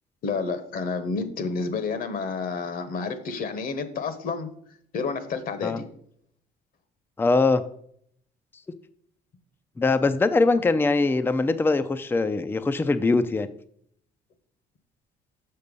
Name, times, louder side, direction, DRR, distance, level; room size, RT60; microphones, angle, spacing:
voice 1, 0.2-4.5 4.9-5.8, left 4 dB, 55° left, 11 dB, 1.2 m, -30 dB
voice 2, 7.2-7.6 9.8-13.5, left 3 dB, 15° left, 11 dB, 0.4 m, -22 dB
6.8 x 5.9 x 5.3 m, 0.67 s
cardioid pair, 110°, 17 cm